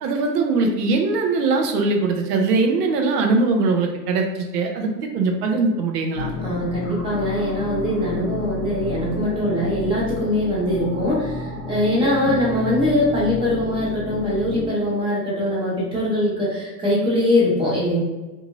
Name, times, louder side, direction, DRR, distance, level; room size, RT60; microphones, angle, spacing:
voice 1, 0.0-6.3 12.3-12.4, right 3 dB, 70° right, 3 dB, 0.7 m, -21 dB
sound 1, 6.1-14.7, left 2 dB, 30° left, 1.0 m, -31 dB
voice 2, 6.4-18.0, left 1 dB, 10° right, -6 dB, 0.7 m, -22 dB
2.7 x 2.4 x 3.0 m, 1.1 s
supercardioid pair, 145°, 48 cm